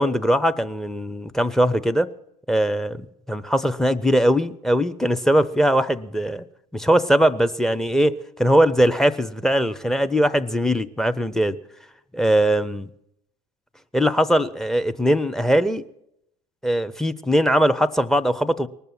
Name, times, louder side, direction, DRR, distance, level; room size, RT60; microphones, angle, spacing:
voice 1, 0.0-2.1 2.5-6.4 6.7-11.6 12.1-12.9 13.9-15.8 16.6-18.7, equal, ahead, 17 dB, 0.6 m, -20 dB
19.5 x 6.8 x 9.3 m, 0.79 s
figure-of-eight pair, 75°, 21 cm